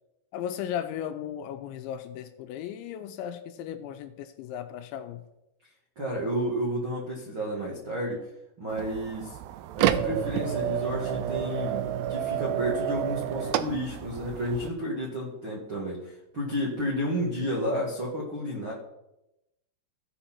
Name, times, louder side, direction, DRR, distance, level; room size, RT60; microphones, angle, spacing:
voice 1, 0.3-5.2, left 10 dB, 80° left, 8 dB, 2.9 m, -36 dB
voice 2, 5.9-8.3 8.6-9.4 9.7-18.7, equal, 65° right, -4 dB, 1.2 m, -31 dB
sound 1, 8.7-14.7, right 11 dB, 90° right, 2.4 m, -30 dB
17.0 x 5.6 x 4.3 m, 0.90 s
omnidirectional pair, 5.4 m